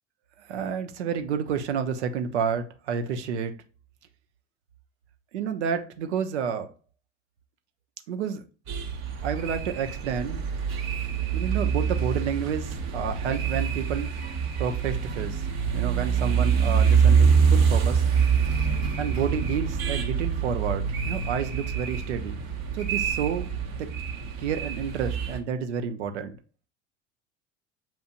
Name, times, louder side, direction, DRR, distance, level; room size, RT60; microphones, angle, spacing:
voice 1, 0.5-3.5 5.3-6.7 8.1-8.4 9.2-10.4 11.3-14.1 14.6-15.4 15.7-18.1 19.0-22.4 22.7-23.9 24.4-26.4, right 7 dB, 70° right, 7 dB, 0.8 m, -30 dB
sound 1, 8.7-25.4, right 6 dB, 45° right, 1.0 m, -25 dB
7.3 x 2.6 x 2.5 m, 0.35 s
figure-of-eight pair, 70°, 35 cm